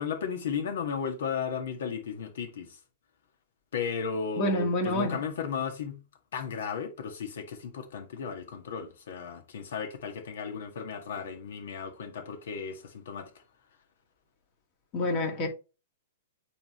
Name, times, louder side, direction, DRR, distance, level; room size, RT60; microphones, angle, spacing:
voice 1, 0.0-2.8 3.7-6.0 6.3-13.3, left 6 dB, 70° left, 1.8 m, -35 dB
voice 2, 4.4-5.2 14.9-15.5, left 1 dB, 40° left, 2.5 m, -27 dB
8.7 x 3.6 x 3.2 m
hypercardioid pair, 120°, 0 cm